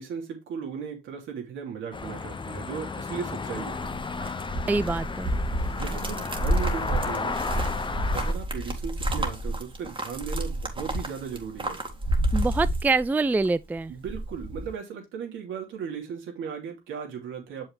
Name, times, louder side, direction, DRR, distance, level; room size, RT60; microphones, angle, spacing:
voice 1, 0.0-3.8 5.8-7.4 8.1-11.8 13.9-17.7, right 7 dB, 80° right, 2.9 m, -36 dB
sound 1, 1.9-8.3, left 4 dB, 25° left, 0.8 m, -33 dB
sound 2, 3.5-13.5 13.8-14.7, right 1 dB, 25° right, 2.1 m, -29 dB
voice 2, 4.7-5.3 12.3-13.9, right 3 dB, 10° right, 0.3 m, -25 dB
6.9 x 5.5 x 3.3 m
cardioid pair, 90°, 20 cm